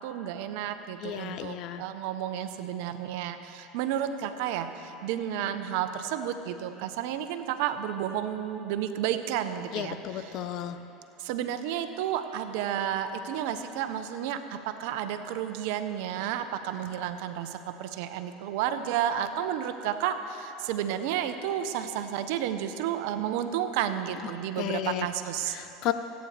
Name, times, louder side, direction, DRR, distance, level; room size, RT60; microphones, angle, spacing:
voice 1, 0.0-10.4 11.2-25.6, right 10 dB, 70° right, 9 dB, 0.8 m, -31 dB
voice 2, 1.0-1.8 9.7-10.8 24.6-25.1 25.6-25.9, left 11 dB, 55° left, 10 dB, 0.7 m, -33 dB
24.5 x 9.2 x 3.3 m, 2.9 s
supercardioid pair, 100°, 0 cm